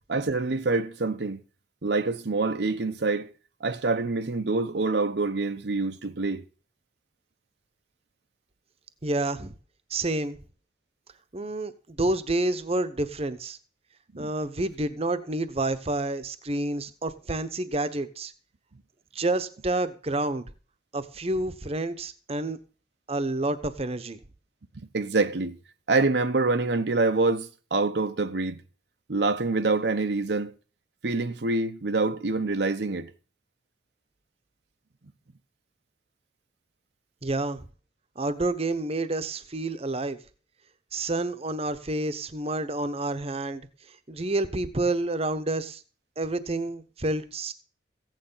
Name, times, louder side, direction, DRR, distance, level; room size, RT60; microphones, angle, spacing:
voice 1, 0.1-1.4 1.8-3.3 3.6-6.4 14.1-14.3 24.9-25.6 25.9-28.6 29.1-30.5 31.0-33.1, right 3 dB, 65° right, 0.8 m, -26 dB
voice 2, 9.0-9.5 9.9-10.4 11.3-13.6 14.2-18.3 19.1-20.4 20.9-22.6 23.1-24.2 37.2-37.6 38.2-40.2 40.9-43.6 44.1-45.8 46.2-47.5, right 2 dB, 35° right, 0.9 m, -29 dB
15.5 x 9.2 x 5.6 m
head